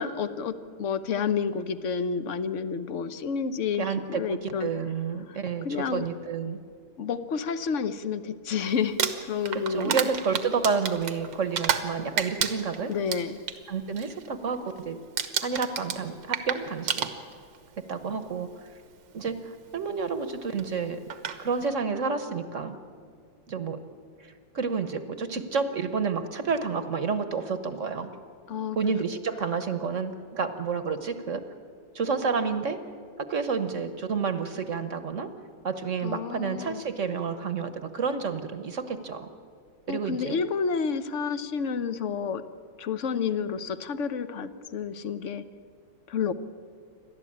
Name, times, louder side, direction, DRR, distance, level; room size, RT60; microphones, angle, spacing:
voice 1, 0.0-4.7 5.3-6.0 7.0-9.0 9.3-10.0 12.9-13.4 28.5-28.9 36.0-36.8 39.9-42.4 42.8-45.5 46.1-46.3, left 6 dB, 55° left, 12 dB, 0.9 m, -30 dB
voice 2, 3.8-6.6 9.5-12.9 13.7-15.0 15.4-17.1 17.9-18.5 19.1-21.0 21.4-22.8 23.5-23.8 24.2-28.1 28.8-31.4 31.9-32.8 33.2-35.3 35.6-39.3 39.9-40.4, right 5 dB, 45° right, 10 dB, 1.2 m, -30 dB
Crumpling crinkling, 8.8-11.9 12.2-13.6 13.9-14.3 14.5-14.9 15.2-17.6 18.5-18.6 20.6-20.7 21.1-21.4, right 8 dB, 80° right, 2.0 m, -30 dB
29.0 x 12.5 x 8.7 m, 2.3 s
omnidirectional pair, 2.0 m